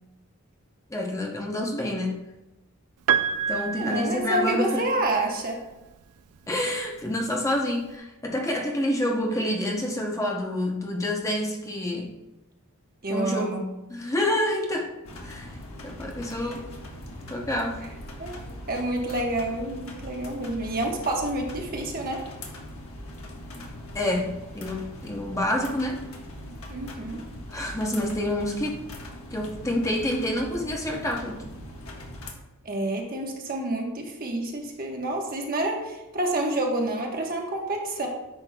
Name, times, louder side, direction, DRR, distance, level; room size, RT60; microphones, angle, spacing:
voice 1, 0.9-2.2 3.5-4.9 6.5-12.1 13.1-13.6 13.9-15.6 15.8-16.7 17.3-17.8 23.9-26.1 27.5-28.8 29.3-31.5, left 1 dB, 15° left, 0 dB, 0.7 m, -28 dB
Piano, 3.1-5.1 6.4-6.5, right 8 dB, 80° right, 0.4 m, -27 dB
voice 2, 3.8-5.6 13.0-13.6 18.2-22.2 26.7-27.2 32.6-38.1, right 1 dB, 40° right, 1 dB, 1.1 m, -28 dB
sound 1, 15.0-32.3, left 1 dB, 70° left, 1.3 m, -41 dB
9.7 x 6.2 x 2.2 m, 1.0 s
head